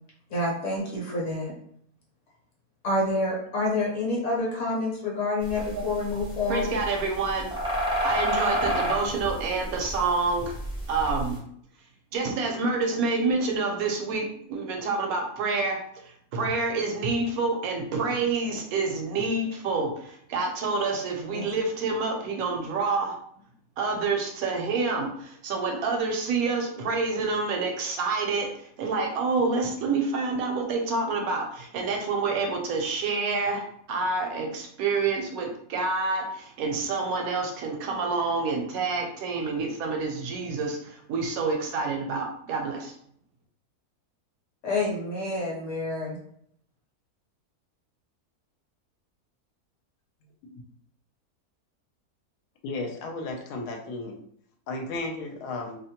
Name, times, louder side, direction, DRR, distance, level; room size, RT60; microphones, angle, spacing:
voice 1, 0.3-1.5 2.8-6.8 21.3-21.5 44.6-46.2, left 2 dB, 55° left, -3 dB, 1.0 m, -28 dB
sound 1, 5.4-11.3, equal, 5° right, 0.4 m, -29 dB
voice 2, 6.5-7.5 8.0-10.6 10.9-11.4 12.1-15.8 16.0-23.2 23.8-42.9, right 4 dB, 75° right, 2 dB, 1.0 m, -28 dB
voice 3, 52.6-54.1 54.7-55.8, left 2 dB, 85° left, 3 dB, 1.1 m, -34 dB
2.7 x 2.1 x 2.8 m, 0.67 s
omnidirectional pair, 1.6 m